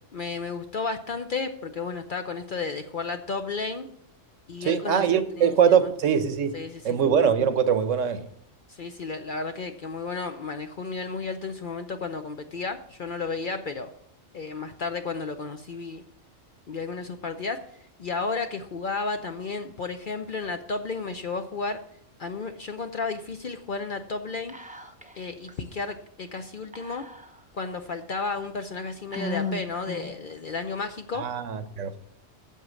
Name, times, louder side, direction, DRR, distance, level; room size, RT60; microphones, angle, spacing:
voice 1, 0.1-3.9 4.5-5.1 5.4-5.7 6.5-7.0 8.7-13.9 14.3-16.0 16.7-17.6 18.0-21.8 22.2-24.5 25.2-27.0 27.5-31.3, left 4 dB, 50° left, 0.6 m, -32 dB
voice 2, 4.6-6.6 6.8-8.2 31.1-31.9, right 7 dB, 75° right, 1.1 m, -22 dB
Whispering, 24.5-25.2 25.5-25.6 26.7-27.6 28.2-28.3 29.1-30.3, left 2 dB, 10° right, 0.4 m, -36 dB
8.2 x 7.2 x 6.3 m
omnidirectional pair, 1.4 m